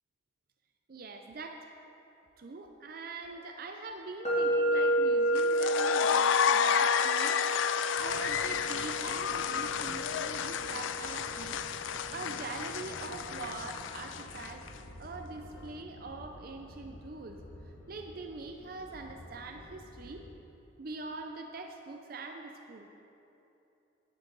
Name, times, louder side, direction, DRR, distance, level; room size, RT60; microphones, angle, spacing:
voice 1, 0.9-1.7 2.4-7.4 8.0-11.6 12.1-14.7 15.0-17.4 17.9-20.2 20.8-22.9, right 3 dB, 50° right, 4 dB, 0.5 m, -43 dB
sound 1, 4.2-12.1, right 1 dB, 35° left, 2.1 m, -32 dB
sound 2, 5.4-14.7, left 8 dB, 80° left, 0.4 m, -31 dB
sound 3, 8.0-20.4, equal, 60° left, 1.7 m, -50 dB
11.0 x 11.0 x 4.0 m, 2.9 s
head